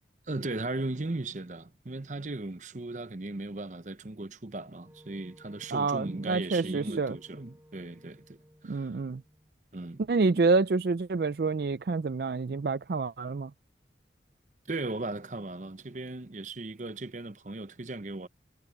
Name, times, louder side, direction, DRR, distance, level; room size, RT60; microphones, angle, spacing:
voice 1, 0.3-8.9 9.7-10.0 14.7-18.3, right 2 dB, 40° right, 0.8 m, -37 dB
Wind instrument woodwind instrument, 4.8-9.5, equal, 15° right, 5.3 m, -57 dB
voice 2, 5.7-7.1 8.7-9.2 10.1-13.5, right 4 dB, 60° right, 0.4 m, -27 dB
head